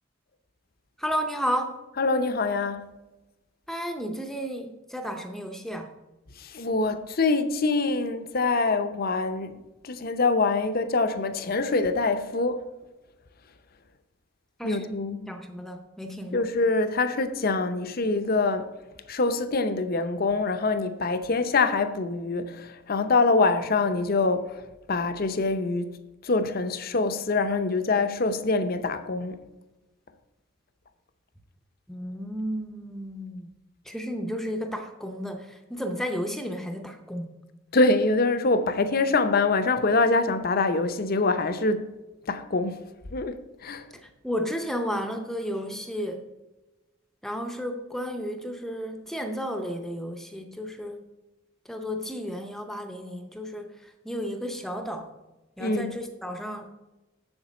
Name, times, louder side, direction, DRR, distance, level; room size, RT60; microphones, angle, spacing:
voice 1, 1.0-1.8 3.7-5.9 14.6-15.0 15.3-16.5 31.9-33.5 33.9-37.3 44.2-46.2 47.2-51.0 51.7-53.7 54.0-55.1 55.6-56.7, equal, ahead, 0.6 m, -32 dB
voice 2, 2.0-2.9 6.4-12.6 14.6-15.3 16.3-18.7 19.1-24.6 24.9-25.9 26.2-29.4 37.7-41.9 42.3-42.8 43.1-43.9 55.6-56.0, left 3 dB, 45° left, 0.6 m, -25 dB
7.2 x 7.2 x 5.1 m
head